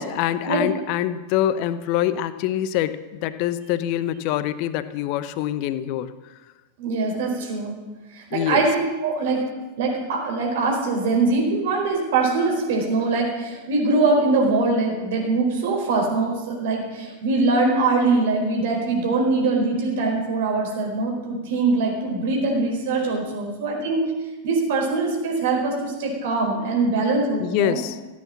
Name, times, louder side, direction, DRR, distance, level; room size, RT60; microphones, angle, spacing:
voice 1, 0.0-6.1 8.3-8.7 27.4-28.0, left 12 dB, 45° left, 14 dB, 0.8 m, -25 dB
voice 2, 6.8-7.7 8.3-8.7 9.0-9.4 9.8-24.0 24.4-27.8, right 3 dB, 55° right, 0 dB, 4.5 m, -22 dB
15.0 x 8.6 x 7.5 m, 1.2 s
figure-of-eight pair, 90°, 0 cm